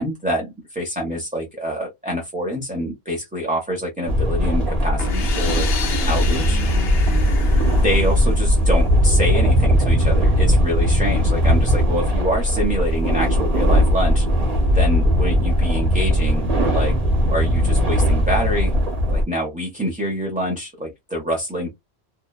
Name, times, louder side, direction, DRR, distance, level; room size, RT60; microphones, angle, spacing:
voice 1, 0.0-5.7 6.1-6.6 7.8-14.3 14.7-16.9 17.3-18.7 19.1-21.7, equal, 10° right, 0.5 m, -26 dB
sound 1, 4.1-19.2, equal, 40° right, 0.9 m, -18 dB
sound 2, 5.0-8.7, left 5 dB, 70° left, 0.9 m, -30 dB
2.7 x 2.1 x 2.2 m
omnidirectional pair, 1.1 m